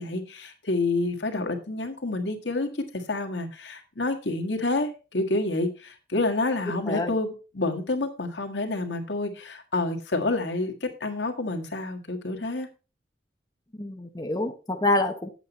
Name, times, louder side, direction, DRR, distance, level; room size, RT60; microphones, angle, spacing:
voice 1, 0.0-2.7 3.1-12.7, left 2 dB, 75° left, 5 dB, 1.7 m, -28 dB
voice 2, 13.8-15.3, left 2 dB, 20° left, 4 dB, 0.8 m, -26 dB
8.3 x 8.1 x 4.2 m, 0.33 s
head